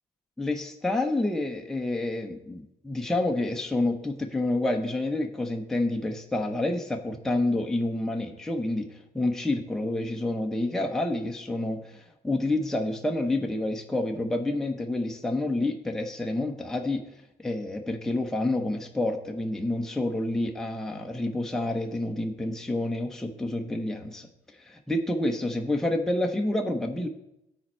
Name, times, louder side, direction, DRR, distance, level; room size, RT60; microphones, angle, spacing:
voice 1, 0.4-17.0 17.4-24.3 24.7-27.1, left 2 dB, 5° left, 2 dB, 0.7 m, -28 dB
12.5 x 4.3 x 4.4 m, 0.84 s
cardioid pair, 110°, 17 cm